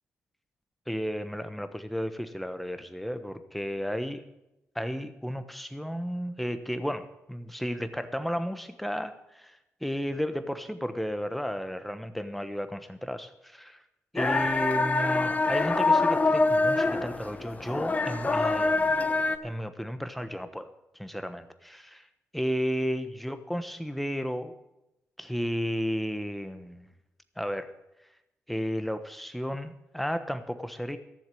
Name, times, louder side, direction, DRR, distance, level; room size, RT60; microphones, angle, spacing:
voice 1, 0.9-4.2 4.7-13.8 14.1-19.0 19.4-22.1 22.3-24.5 25.2-26.9 27.4-27.7 28.5-31.0, equal, ahead, 10 dB, 1.1 m, -33 dB
sound 1, 14.2-19.4, left 3 dB, 25° left, 1.0 m, -25 dB
13.5 x 7.4 x 9.2 m, 0.92 s
cardioid pair, 90°, 6 cm